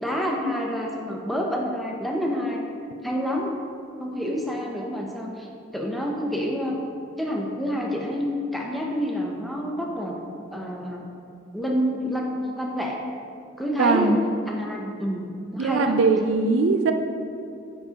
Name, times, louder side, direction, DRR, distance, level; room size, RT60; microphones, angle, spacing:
voice 1, 0.0-2.6 3.0-3.6 4.0-5.5 5.7-6.8 7.2-10.2 10.5-11.1 11.5-13.0 13.6-14.2 14.5-15.2 15.5-16.0, equal, ahead, -1 dB, 0.5 m, -28 dB
voice 2, 13.8-14.2 15.6-16.9, right 4 dB, 70° right, 7 dB, 0.4 m, -21 dB
9.3 x 4.6 x 2.8 m, 2.4 s
head